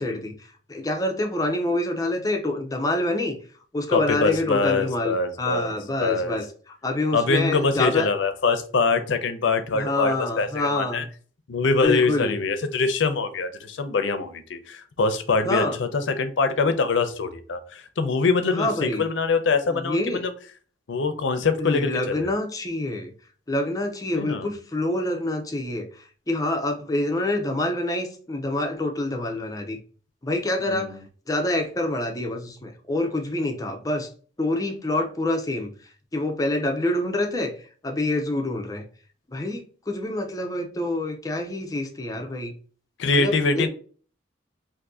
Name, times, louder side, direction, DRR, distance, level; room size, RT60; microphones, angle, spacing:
voice 1, 0.0-3.4 3.7-8.1 9.7-11.1 11.7-12.4 15.4-15.8 18.5-19.0 19.7-20.2 21.6-23.1 23.5-29.8 30.2-34.1 34.4-38.9 39.3-42.5 43.1-43.7, left 1 dB, 20° left, 3 dB, 0.4 m, -27 dB
voice 2, 3.9-5.7 6.0-6.4 7.1-11.0 11.5-15.9 16.2-20.3 20.9-22.3 24.1-24.5 30.7-30.9 43.0-43.7, left 4 dB, 90° left, 9 dB, 0.5 m, -24 dB
2.6 x 2.6 x 3.5 m, 0.42 s
head